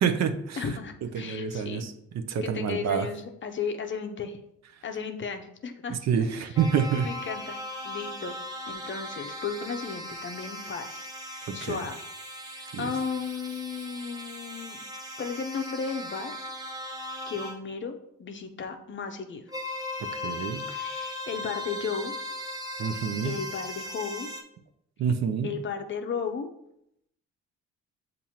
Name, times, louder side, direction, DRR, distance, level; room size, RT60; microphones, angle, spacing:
voice 1, 0.0-0.6 1.1-1.9 2.3-3.1 5.9-7.1 11.5-11.8 12.7-12.9 20.2-20.6 22.8-23.4 25.0-25.5, right 7 dB, 60° right, 7 dB, 0.6 m, -27 dB
voice 2, 0.6-1.9 2.4-4.4 4.8-6.0 6.4-6.6 7.0-8.4 8.7-12.1 12.5-14.8 15.2-16.3 17.3-19.5 20.7-22.1 23.2-24.3 25.4-26.5, left 5 dB, 40° left, 6 dB, 0.6 m, -35 dB
sound 1, 6.6-17.6 19.5-24.4, left 1 dB, 10° right, 0.6 m, -38 dB
7.1 x 2.6 x 2.8 m, 0.75 s
cardioid pair, 90°, 30 cm